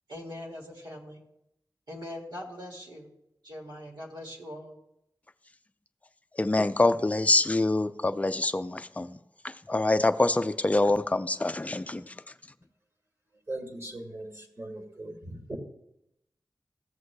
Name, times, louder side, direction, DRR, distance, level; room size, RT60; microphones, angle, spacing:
voice 1, 0.1-1.2 1.9-3.1 3.4-4.8, left 1 dB, 80° right, 2.1 m, -41 dB
voice 2, 6.3-9.2 9.4-12.1, left 2 dB, 20° left, 0.4 m, -25 dB
voice 3, 13.5-15.6, right 1 dB, 40° right, 1.8 m, -39 dB
14.5 x 8.0 x 2.2 m
wide cardioid pair, 90°, 7 cm